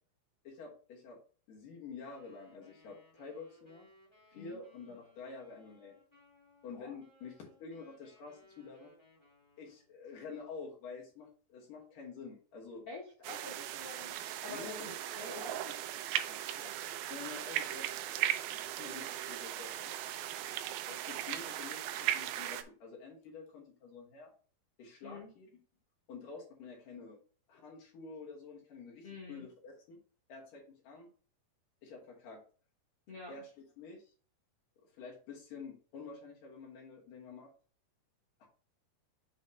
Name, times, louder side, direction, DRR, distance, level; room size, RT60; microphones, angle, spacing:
voice 1, 0.4-1.2 1.5-3.9 4.3-6.0 6.6-8.9 9.6-12.9 14.5-14.9 15.3-15.7 17.1-17.9 18.5-19.9 20.9-24.3 24.8-25.5 26.1-27.2 27.5-30.0 30.3-31.1 31.8-32.4 33.3-34.1 34.9-37.5 38.4-38.5, left 4 dB, 65° left, -1 dB, 2.7 m, -48 dB
Wind instrument woodwind instrument, 1.9-9.9, left 2 dB, 10° left, 1.7 m, -65 dB
voice 2, 12.9-15.6 16.3-16.7 25.0-25.3 29.0-29.5 33.1-33.4, left 3 dB, 80° left, -4 dB, 1.3 m, -48 dB
sound 1, 13.2-22.6, right 12 dB, 85° right, 2.2 m, -38 dB
7.6 x 3.1 x 5.3 m, 0.41 s
omnidirectional pair, 4.7 m